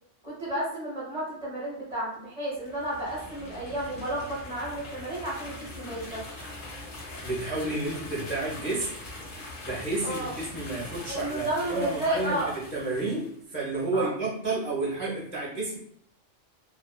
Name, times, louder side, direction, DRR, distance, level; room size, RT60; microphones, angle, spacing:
voice 1, 0.2-6.4 10.0-10.3 11.1-12.5 13.9-14.1, right 1 dB, 45° right, -7 dB, 0.6 m, -32 dB
sound 1, 2.5-13.4, left 2 dB, 55° left, 0.7 m, -42 dB
voice 2, 7.2-8.9 9.7-12.4 12.7-15.8, right 2 dB, 15° left, -6 dB, 0.4 m, -31 dB
2.5 x 2.2 x 2.2 m, 0.69 s
omnidirectional pair, 1.3 m